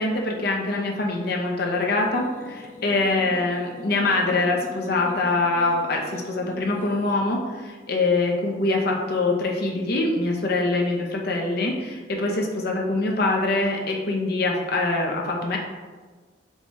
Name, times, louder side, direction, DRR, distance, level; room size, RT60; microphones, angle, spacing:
voice 1, 0.0-15.6, left 2 dB, 60° left, 0 dB, 0.7 m, -24 dB
sound 1, 1.6-7.1, equal, 10° left, 0.5 m, -42 dB
4.7 x 2.3 x 4.1 m, 1.4 s
head